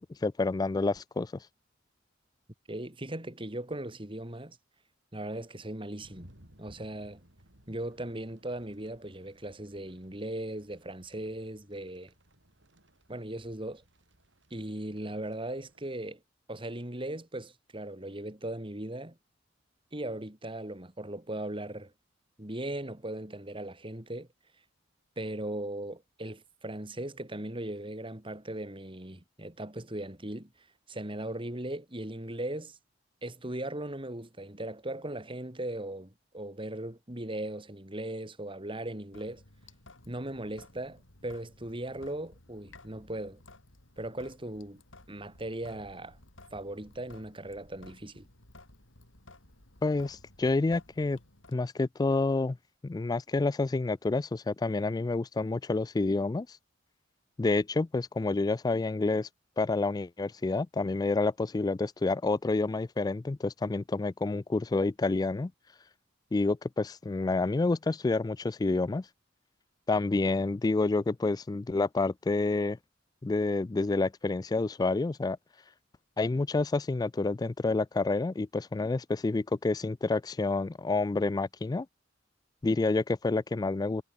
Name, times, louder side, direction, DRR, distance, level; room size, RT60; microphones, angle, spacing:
voice 1, 0.2-1.3 49.8-51.2 51.5-52.6 52.8-56.5 57.4-59.3 59.6-65.5 66.3-69.0 69.9-72.8 73.2-75.4 76.2-81.9 82.6-84.0, left 3 dB, 20° left, 0.3 m, -28 dB
voice 2, 2.7-4.6 5.1-6.3 6.6-7.2 7.7-12.1 13.1-13.8 14.5-16.2 16.5-19.2 19.9-21.9 22.4-24.3 25.2-30.5 30.9-32.8 33.2-39.4 40.1-43.4 44.0-44.8 45.1-46.2 46.5-48.3, right 1 dB, 25° right, 3.1 m, -38 dB
sound 1, 6.0-16.0, right 1 dB, 65° right, 6.8 m, -60 dB
Sink (filling or washing) / Drip, 39.1-51.6, left 2 dB, 80° left, 4.7 m, -56 dB
head